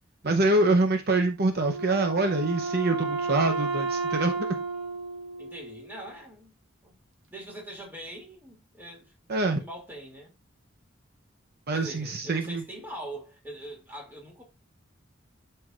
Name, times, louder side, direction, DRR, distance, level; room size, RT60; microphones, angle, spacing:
voice 1, 0.2-4.6 9.3-9.6 11.7-12.6, right 2 dB, 55° right, 0.8 m, -25 dB
Wind instrument woodwind instrument, 1.6-6.1, right 3 dB, 80° right, 1.5 m, -32 dB
voice 2, 5.4-6.5 6.8-7.0 7.3-9.3 9.6-10.3 11.7-14.4, right 1 dB, 10° right, 2.5 m, -42 dB
11.0 x 4.6 x 2.5 m
head